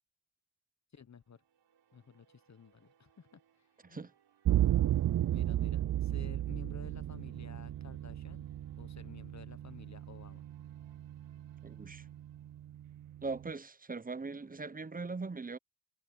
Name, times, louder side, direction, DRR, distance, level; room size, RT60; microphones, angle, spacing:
voice 1, 0.9-1.4 1.9-4.1 5.3-8.4 8.8-10.4, left 6 dB, 40° left, 1.2 m, -53 dB
sound 1, 1.1-13.5, right 9 dB, 75° right, 4.5 m, -73 dB
sound 2, 4.4-13.5, right 12 dB, 45° right, 0.5 m, -34 dB
voice 2, 11.6-12.1 13.2-15.6, right 4 dB, 20° right, 0.8 m, -40 dB
cardioid pair, 60°, 43 cm